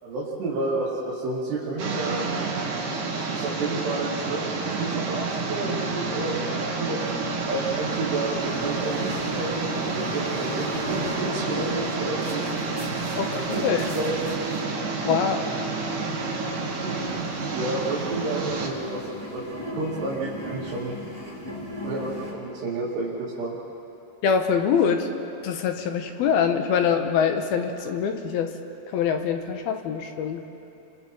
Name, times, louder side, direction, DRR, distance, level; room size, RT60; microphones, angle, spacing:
voice 1, 0.0-2.3 3.3-12.7 13.3-14.4 16.8-17.0 17.5-19.0 19.3-21.0 21.8-23.6, right 2 dB, 75° right, -8 dB, 4.5 m, -31 dB
sound 1, 1.8-18.7, right 3 dB, 55° right, 3.4 m, -29 dB
sound 2, 7.1-22.3, equal, 5° left, 3.1 m, -38 dB
voice 2, 13.1-13.9 15.0-15.4 24.2-25.1 25.4-28.5 28.9-30.4, left 7 dB, 70° left, 5 dB, 2.7 m, -24 dB
29.5 x 25.0 x 4.5 m, 2.9 s
omnidirectional pair, 4.9 m